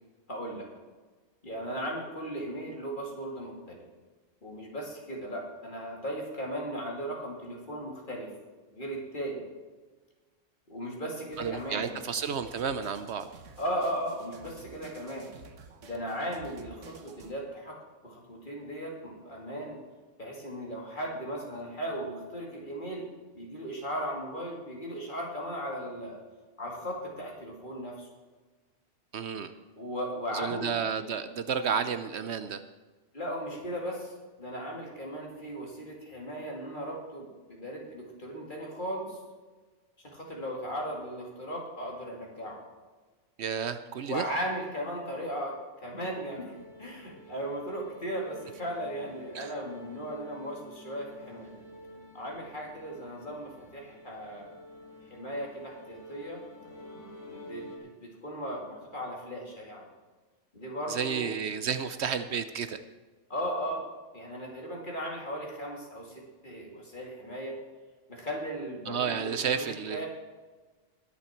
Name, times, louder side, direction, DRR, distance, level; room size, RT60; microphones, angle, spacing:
voice 1, 0.3-0.7 1.4-3.8 4.4-8.3 8.7-9.4 10.7-11.9 13.6-15.3 15.8-17.8 18.0-19.8 20.2-23.1 23.3-26.2 26.6-28.1 29.8-30.7 33.1-39.2 40.0-42.6 44.1-46.5 46.8-51.5 52.1-54.6 55.1-56.4 56.9-59.9 60.5-61.4 63.3-63.8 64.1-67.6 68.1-70.1, equal, 40° left, -1 dB, 2.8 m, -37 dB
sound 1, 11.3-17.3, right 5 dB, 80° right, 1.4 m, -51 dB
voice 2, 11.4-13.3 29.1-29.5 30.3-32.6 43.4-44.2 49.3-49.5 60.9-62.8 68.9-70.1, right 7 dB, 65° right, 11 dB, 0.9 m, -31 dB
sound 2, 46.3-57.8, left 1 dB, 75° left, 2.3 m, -49 dB
20.0 x 7.2 x 4.4 m, 1.3 s
omnidirectional pair, 1.3 m